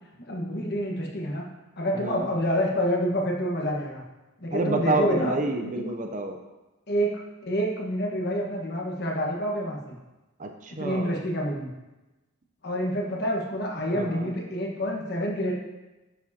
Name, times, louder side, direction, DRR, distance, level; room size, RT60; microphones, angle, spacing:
voice 1, 0.3-1.4 1.8-4.0 4.4-5.4 5.8-5.9 6.9-10.0 10.8-11.7 12.6-15.5, equal, 50° left, -1 dB, 1.4 m, -28 dB
voice 2, 1.9-2.3 4.5-6.4 10.4-11.2 13.9-14.3, right 2 dB, 35° right, 4 dB, 0.6 m, -28 dB
10.0 x 7.2 x 2.8 m, 1.1 s
head